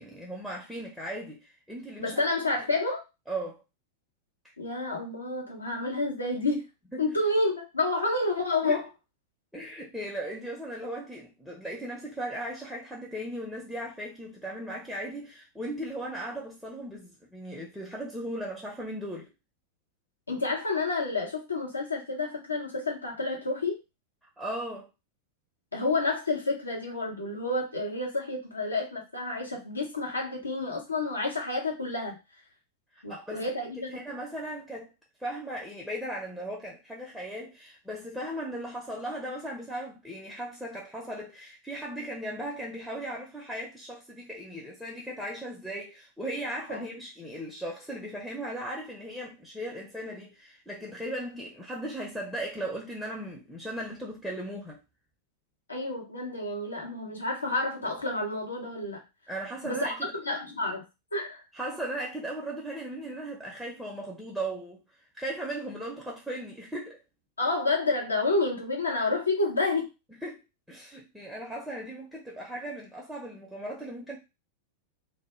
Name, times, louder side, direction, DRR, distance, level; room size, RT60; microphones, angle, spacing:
voice 1, 0.0-2.2 3.3-3.6 4.4-4.5 6.9-7.1 8.6-8.8 9.5-19.3 24.4-24.9 32.9-33.4 33.9-34.9 35.2-54.8 59.3-60.1 61.5-64.8 65.1-67.0 70.2-70.4 70.7-74.2, right 1 dB, ahead, 0.5 m, -37 dB
voice 2, 2.0-3.0 4.6-6.6 7.0-8.8 20.3-23.8 25.7-32.1 33.0-33.9 46.7-46.8 55.7-59.0 59.6-59.9 60.3-60.8 61.1-61.4 67.4-69.9, left 2 dB, 80° left, 0.8 m, -29 dB
2.1 x 2.1 x 3.0 m
figure-of-eight pair, 90°, 0 cm